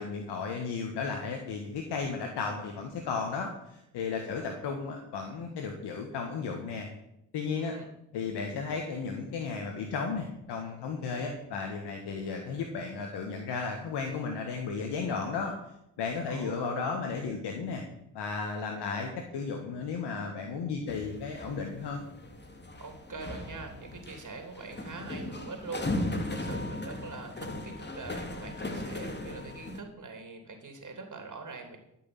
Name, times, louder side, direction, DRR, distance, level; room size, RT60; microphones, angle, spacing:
voice 1, 0.0-6.9 7.3-7.8 8.1-15.5 16.0-17.8 18.1-22.0, left 5 dB, 75° left, 3 dB, 1.8 m, -34 dB
voice 2, 4.3-4.7 7.5-7.9 16.3-16.7 22.8-31.8, right 4 dB, 45° right, 4 dB, 3.3 m, -44 dB
sound 1, 20.9-29.8, left 1 dB, 25° left, 2.5 m, -37 dB
13.5 x 6.4 x 8.8 m, 0.86 s
hypercardioid pair, 45°, 41 cm